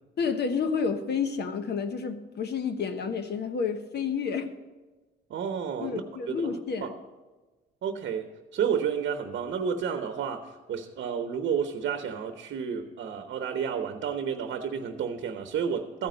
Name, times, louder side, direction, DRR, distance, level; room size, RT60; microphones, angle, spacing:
voice 1, 0.2-4.5 5.8-6.9, left 6 dB, 55° left, 9 dB, 1.1 m, -30 dB
voice 2, 5.3-6.0 6.3-6.5 6.8-6.9 7.8-16.1, right 7 dB, 65° right, 6 dB, 0.9 m, -31 dB
14.0 x 5.1 x 7.8 m, 1.2 s
cardioid pair, 90°, 20 cm